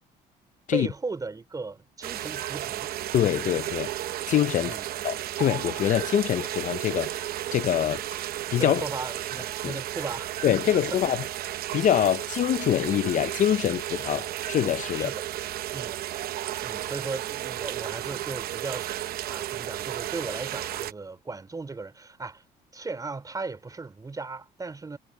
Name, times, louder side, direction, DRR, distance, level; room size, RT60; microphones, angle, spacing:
voice 1, 0.7-2.9 4.7-4.9 8.6-10.3 10.7-11.0 14.1-14.2 15.0-15.2 15.7-16.0 16.6-18.9 19.3-22.4 22.7-25.0, right 3 dB, 20° right, 3.9 m, -36 dB
sound 1, 2.0-20.9, right 13 dB, 65° right, 0.8 m, -33 dB
voice 2, 3.1-3.9 4.3-4.8 5.0-7.2 7.5-8.0 8.5-8.8 9.6-9.7 10.4-11.2 11.7-15.1, left 11 dB, 50° left, 0.5 m, -24 dB
cardioid pair, 110°, 17 cm